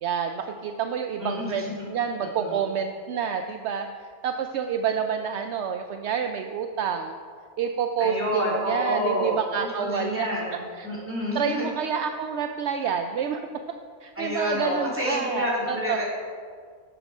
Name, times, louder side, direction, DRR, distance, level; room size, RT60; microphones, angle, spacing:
voice 1, 0.0-3.9 4.2-7.2 7.6-10.3 10.7-10.9 11.3-13.4 14.0-16.0, right 7 dB, 70° right, 6 dB, 0.7 m, -28 dB
voice 2, 1.2-1.7 2.2-2.6 8.0-11.7 14.1-16.0, left 1 dB, 10° right, -7 dB, 3.0 m, -29 dB
12.0 x 7.4 x 4.9 m, 2.1 s
omnidirectional pair, 1.6 m